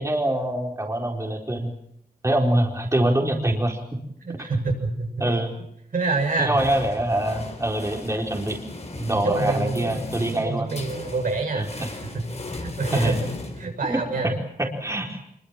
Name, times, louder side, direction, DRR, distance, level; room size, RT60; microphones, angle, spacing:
voice 1, 0.0-1.7 2.2-4.0 4.4-4.5 5.2-5.6 6.4-8.6 9.1-10.8 11.5-11.7 12.9-13.2 13.9-14.3 14.6-15.2, right 1 dB, 20° right, 1 dB, 4.3 m, -24 dB
voice 2, 4.2-5.4 5.9-6.5 8.9-10.0 10.4-12.2 12.5-13.2 13.6-14.3, right 3 dB, 70° right, 2 dB, 6.9 m, -27 dB
sound 1, 6.2-14.1, left 2 dB, 50° left, 4.4 m, -37 dB
25.0 x 23.0 x 7.5 m, 0.75 s
cardioid pair, 65°, 15 cm